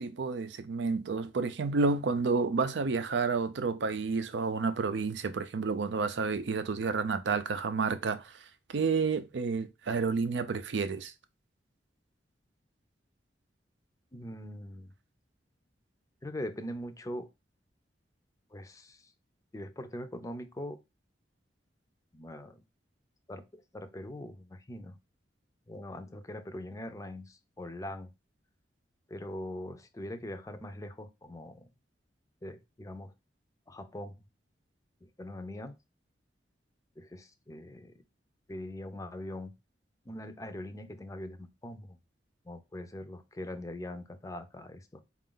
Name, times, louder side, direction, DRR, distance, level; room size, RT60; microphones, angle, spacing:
voice 1, 0.0-8.3 8.7-11.1, right 4 dB, 75° right, 0.5 m, -30 dB
voice 2, 14.1-14.9 16.2-17.3 18.5-19.1 19.5-20.8 22.1-22.6 23.3-25.0 25.7-28.1 29.1-31.7 32.4-33.1 33.7-34.2 35.0-35.8 37.0-37.9 38.5-39.5 40.1-42.0 42.4-45.0, left 1 dB, 20° left, 0.5 m, -42 dB
4.2 x 2.5 x 3.7 m
head